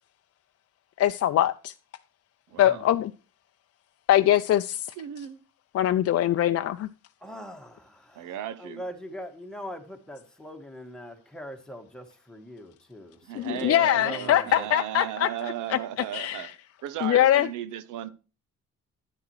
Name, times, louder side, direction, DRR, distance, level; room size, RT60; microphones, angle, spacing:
voice 1, 1.0-1.7 2.6-3.1 4.1-4.9 5.7-6.9 13.3-15.8 16.1-16.5 17.0-17.5, left 12 dB, 55° left, 0.5 m, -23 dB
voice 2, 2.5-2.8 5.0-5.4 8.2-8.8 13.3-16.5 16.8-18.1, right 11 dB, 85° right, 0.8 m, -35 dB
voice 3, 7.2-14.7, equal, ahead, 1.6 m, -42 dB
10.0 x 9.6 x 3.1 m
cardioid pair, 90°, 30 cm